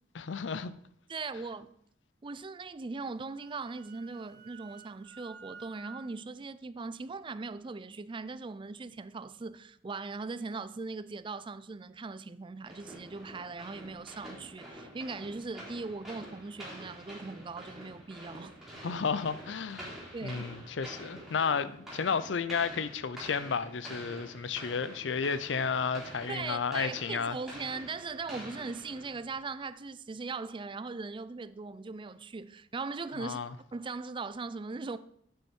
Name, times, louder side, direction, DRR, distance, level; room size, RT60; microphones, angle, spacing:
voice 1, 0.2-0.7 18.8-27.4 33.2-33.5, left 5 dB, 85° left, 0.6 m, -32 dB
voice 2, 1.1-1.7 2.2-18.6 20.1-20.4 26.3-33.4 33.7-35.0, right 4 dB, 30° right, 0.4 m, -39 dB
Wind instrument woodwind instrument, 3.1-6.0, right 6 dB, 60° right, 1.9 m, -51 dB
sound 1, 12.7-29.4, right 1 dB, ahead, 4.1 m, -47 dB
9.0 x 8.9 x 4.4 m
head